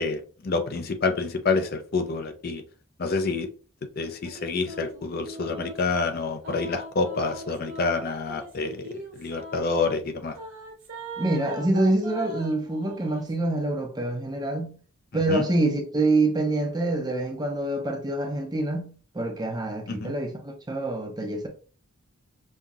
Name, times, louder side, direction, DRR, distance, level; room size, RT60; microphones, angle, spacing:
voice 1, 0.0-2.6 3.0-3.5 4.0-10.4 15.3-15.5 19.9-20.1, left 3 dB, 45° left, 0.5 m, -28 dB
sound 1, 4.2-5.8 6.4-9.6 10.3-13.3, right 1 dB, 60° right, 1.2 m, -40 dB
voice 2, 11.2-14.8 15.1-21.5, right 2 dB, 20° right, 0.6 m, -26 dB
5.4 x 2.7 x 2.4 m
head